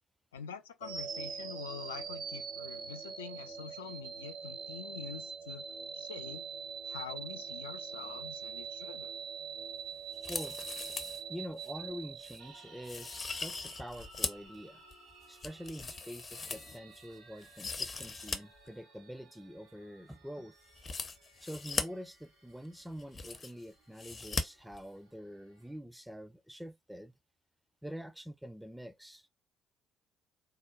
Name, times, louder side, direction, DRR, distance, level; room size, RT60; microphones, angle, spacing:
voice 1, 0.3-5.7 5.9-6.5 6.9-9.1, left 7 dB, 80° left, 0.4 m, -46 dB
sound 1, 0.8-12.9, right 6 dB, 50° right, 0.7 m, -43 dB
sound 2, 10.1-11.2 11.6-11.7 12.2-12.4 12.8-14.5 14.9-17.0 17.4-18.4 18.7-18.8 20.7-21.8 22.6-22.7 22.9-23.6 24.0-24.4 24.7-24.8, left 4 dB, 40° left, 0.6 m, -39 dB
voice 2, 10.3-10.6 11.3-14.8 15.3-20.5 21.4-27.1 27.8-29.3, equal, 5° right, 0.5 m, -45 dB
sound 3, 12.4-25.8, right 3 dB, 70° right, 1.3 m, -59 dB
3.6 x 2.1 x 3.7 m
figure-of-eight pair, 50°, 0 cm